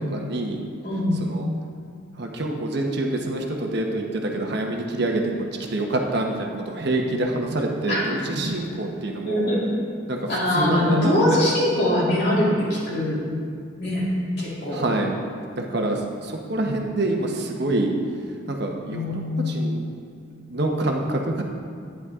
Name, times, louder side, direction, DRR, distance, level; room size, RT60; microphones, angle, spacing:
voice 1, 0.1-0.6 1.2-1.5 2.2-5.2 5.7-9.5 10.1-10.2 10.5-11.4 14.7-15.2 15.5-17.9 18.5-19.8 20.5-21.4, right 2 dB, 55° right, 1 dB, 1.1 m, -26 dB
voice 2, 0.8-1.2 7.9-8.0 9.2-9.7 10.3-13.2 13.8-14.0 14.4-14.9 18.9-19.6, left 1 dB, 55° left, -7 dB, 2.9 m, -22 dB
11.0 x 9.5 x 3.7 m, 2.2 s
head